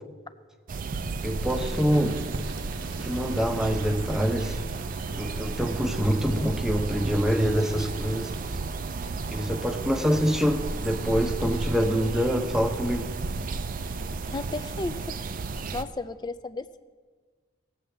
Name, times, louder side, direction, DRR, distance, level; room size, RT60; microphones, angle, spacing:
sound 1, 0.7-15.8, right 3 dB, 45° right, 0.4 m, -33 dB
voice 1, 1.2-2.2 3.0-4.6 5.1-8.3 9.3-13.1, equal, 5° right, 5 dB, 0.7 m, -25 dB
sound 2, 1.4-15.9, right 2 dB, 70° right, 0.9 m, -45 dB
voice 2, 14.3-15.2 15.7-16.8, left 2 dB, 20° left, 13 dB, 0.4 m, -34 dB
19.0 x 7.5 x 3.4 m, 1.5 s
head